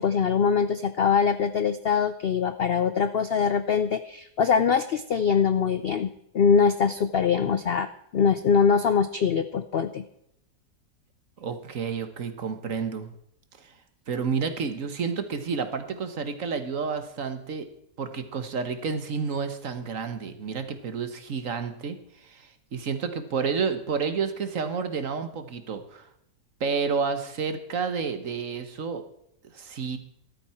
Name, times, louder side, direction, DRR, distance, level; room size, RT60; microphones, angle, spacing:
voice 1, 0.0-10.0, left 6 dB, 65° left, 12 dB, 0.6 m, -23 dB
voice 2, 11.4-13.1 13.6-13.7 14.1-17.7 18.0-26.1 26.6-29.0 29.5-30.0, right 5 dB, 55° right, 9 dB, 1.6 m, -30 dB
14.0 x 12.5 x 4.4 m, 0.76 s
omnidirectional pair, 1.7 m